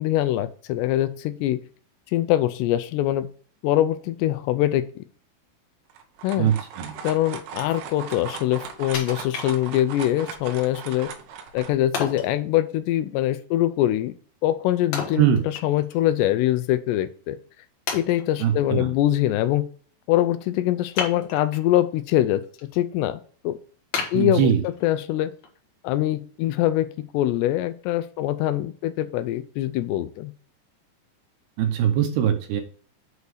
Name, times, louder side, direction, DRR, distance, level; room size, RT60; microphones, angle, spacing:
voice 1, 0.0-1.6 2.1-3.3 3.6-5.0 6.2-6.5 7.0-11.1 11.5-14.1 14.4-15.3 15.6-17.4 17.9-19.7 20.1-23.6 24.1-24.5 24.8-25.3 25.8-30.3, left 13 dB, 80° left, 12 dB, 2.6 m, -23 dB
sound 1, 5.9-11.7, right 7 dB, 90° right, 3.3 m, -38 dB
voice 2, 6.4-7.0 15.2-15.4 18.4-18.9 24.1-24.6 31.6-32.6, right 9 dB, 75° right, 6 dB, 2.7 m, -21 dB
Wood, 8.9-10.0 10.5-10.6 11.9-12.3 14.9-16.0 16.4-16.5 17.2-17.3 17.9-18.5 20.9-21.7 22.2-22.6 23.0-23.1 23.9-24.9 25.4-25.5, left 5 dB, 60° left, 2.1 m, -32 dB
8.1 x 4.5 x 4.9 m, 0.42 s
omnidirectional pair, 5.0 m